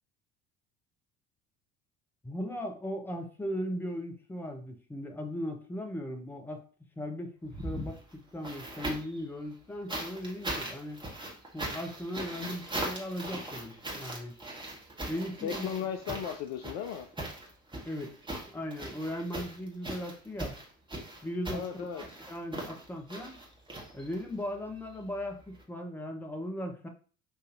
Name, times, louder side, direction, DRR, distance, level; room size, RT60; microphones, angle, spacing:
voice 1, 2.2-6.6 7.0-8.0 8.3-11.0 11.5-14.4 15.1-15.7 17.8-18.2 18.5-20.6 21.2-23.4 23.9-26.9, equal, 5° left, 4 dB, 0.7 m, -38 dB
sound 1, 7.4-9.2 9.9-24.4 25.5-25.6, right 1 dB, 10° right, 1.3 m, -39 dB
voice 2, 15.2-17.1 21.5-22.2, left 8 dB, 45° left, 6 dB, 0.4 m, -36 dB
5.9 x 2.6 x 2.5 m, 0.40 s
figure-of-eight pair, 60°, 40 cm